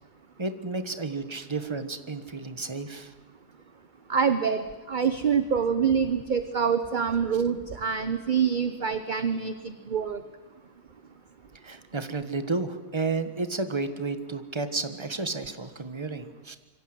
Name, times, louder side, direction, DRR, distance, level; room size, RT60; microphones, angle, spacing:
voice 1, 0.4-3.1 11.6-16.6, right 3 dB, 20° right, 9 dB, 1.3 m, -32 dB
voice 2, 4.1-10.2, right 6 dB, 35° right, 10 dB, 1.0 m, -26 dB
26.5 x 23.5 x 7.9 m, 1.2 s
omnidirectional pair, 1.7 m